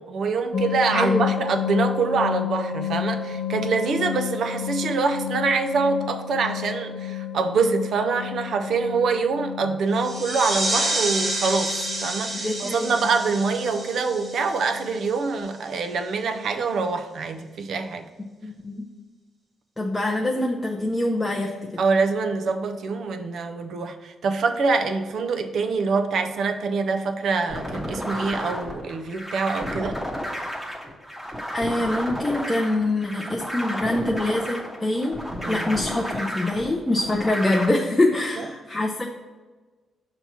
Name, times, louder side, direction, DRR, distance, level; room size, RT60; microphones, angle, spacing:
voice 1, 0.0-11.7 12.0-18.0 21.8-30.0 35.4-35.7 38.4-38.5, right 4 dB, 60° right, 7 dB, 0.6 m, -25 dB
sound 1, 0.5-15.4, left 9 dB, 65° left, 0.6 m, -32 dB
voice 2, 0.9-1.3 12.3-13.0 18.4-18.9 19.8-21.5 31.5-35.2 35.5-39.0, left 1 dB, 10° left, -1 dB, 0.5 m, -24 dB
sound 2, 9.9-15.3, right 1 dB, 35° right, 1.1 m, -29 dB
sound 3, 27.5-37.7, equal, 10° right, 1.1 m, -32 dB
6.8 x 3.0 x 5.8 m, 1.3 s
cardioid pair, 145°, 0 cm